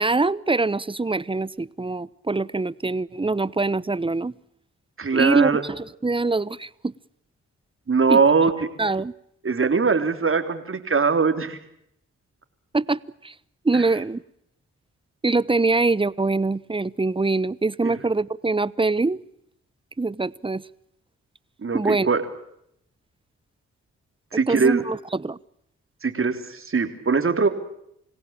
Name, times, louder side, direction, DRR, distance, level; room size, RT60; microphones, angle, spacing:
voice 1, 0.0-4.3 5.1-6.9 8.1-8.2 8.8-9.1 12.7-13.3 13.6-14.2 15.2-19.2 20.0-20.6 21.7-22.1 24.3-25.4, right 3 dB, 20° right, 21 dB, 0.9 m, -24 dB
voice 2, 5.0-5.6 7.9-8.5 9.4-11.6 13.7-13.8 17.8-17.9 21.6-22.2 24.3-24.8 26.0-27.5, right 5 dB, 45° right, 7 dB, 3.6 m, -21 dB
26.5 x 17.0 x 8.9 m, 0.76 s
supercardioid pair, 50°, 29 cm